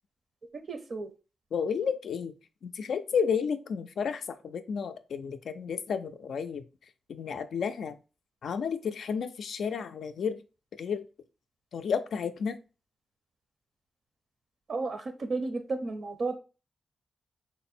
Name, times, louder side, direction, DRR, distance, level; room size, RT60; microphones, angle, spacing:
voice 1, 0.7-1.1 14.7-16.4, right 3 dB, 55° right, 6 dB, 0.5 m, -33 dB
voice 2, 1.5-2.3 2.6-6.6 7.1-8.0 8.4-10.4 10.8-11.0 11.7-12.6, left 6 dB, 80° left, 9 dB, 0.3 m, -32 dB
3.6 x 2.0 x 4.1 m, 0.32 s
wide cardioid pair, 130°, 0 cm